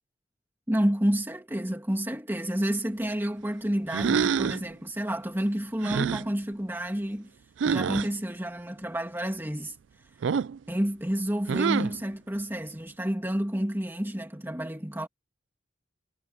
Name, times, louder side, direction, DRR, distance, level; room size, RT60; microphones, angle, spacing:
voice 1, 0.7-7.3 7.6-9.8 10.7-15.1, equal, 10° right, 2.5 m, -29 dB
sound 1, 3.9-4.7 5.8-6.3 7.6-8.1 10.2-10.6 11.5-12.0, right 6 dB, 80° right, 0.4 m, -26 dB
head